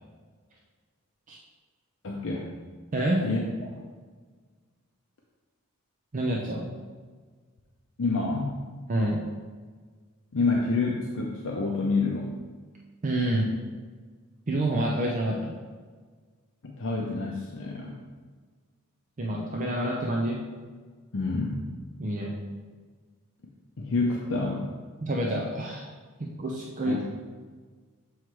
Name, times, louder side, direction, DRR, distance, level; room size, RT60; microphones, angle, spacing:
voice 1, 2.0-2.5 3.2-3.4 3.8-3.9 8.0-8.6 10.3-12.3 16.6-18.0 21.1-21.6 23.8-24.7 26.9-27.1, left 3 dB, 60° left, -1 dB, 0.6 m, -28 dB
voice 2, 2.9-3.3 6.1-6.7 8.9-9.2 13.0-13.5 14.5-15.5 19.2-20.4 22.0-22.3 25.0-25.9 26.2-27.0, right 1 dB, 35° right, -2 dB, 0.6 m, -27 dB
7.6 x 3.2 x 4.6 m, 1.5 s
head